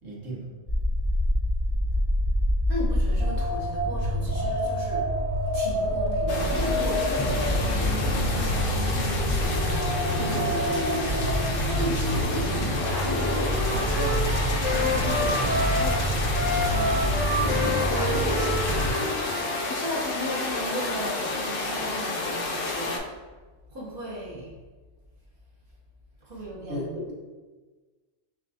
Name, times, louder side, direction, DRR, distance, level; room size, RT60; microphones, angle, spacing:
voice 1, 0.0-0.5 26.7-27.1, equal, 80° right, -4 dB, 1.4 m, -34 dB
sound 1, 0.7-18.9, equal, 35° left, 0.4 m, -26 dB
voice 2, 2.7-5.1 5.4-16.4 16.6-23.0 23.7-24.5 26.2-26.9, equal, 50° right, -4 dB, 0.9 m, -37 dB
sound 2, 6.3-23.0, left 3 dB, 80° left, 1.0 m, -31 dB
Wind instrument woodwind instrument, 13.0-19.6, left 1 dB, 10° right, 0.8 m, -29 dB
6.3 x 2.3 x 2.7 m, 1.3 s
omnidirectional pair, 1.3 m